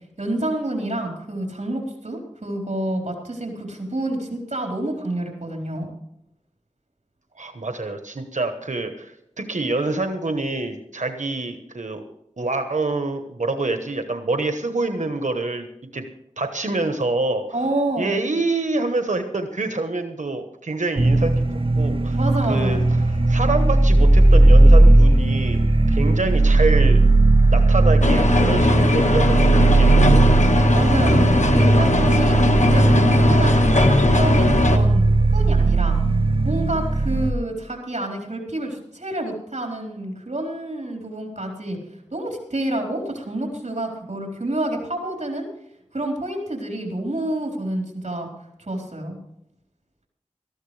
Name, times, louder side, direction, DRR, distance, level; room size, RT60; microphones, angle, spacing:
voice 1, 0.2-5.9 17.5-18.2 22.2-22.9 30.7-32.4 32.7-35.1 35.3-36.0 36.4-41.8 42.1-45.5 45.9-48.3 48.6-49.2, right 1 dB, 70° right, 1 dB, 4.1 m, -28 dB
voice 2, 7.4-12.0 12.4-15.7 15.9-16.0 16.4-17.4 18.0-21.4 21.8-22.2 22.5-25.6 25.9-27.0 27.5-30.3, right 2 dB, 90° right, 6 dB, 1.1 m, -26 dB
sound 1, 21.0-37.3, right 2 dB, 50° right, 1.1 m, -17 dB
sound 2, 28.0-34.8, left 2 dB, 75° left, 1.3 m, -19 dB
18.5 x 14.0 x 3.3 m, 0.79 s
wide cardioid pair, 45°, 12 cm